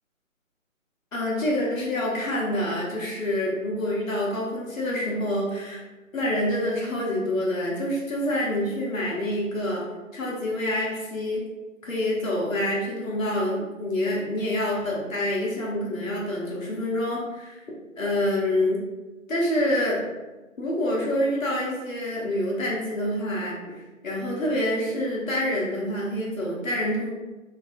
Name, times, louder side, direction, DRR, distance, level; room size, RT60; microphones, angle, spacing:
voice 1, 1.1-5.8 6.1-9.8 10.1-11.4 11.8-17.6 18.0-18.8 19.3-20.0 20.6-27.1, left 1 dB, 75° left, -4 dB, 1.0 m, -27 dB
2.7 x 2.4 x 2.5 m, 1.2 s
figure-of-eight pair, 160°, 40 cm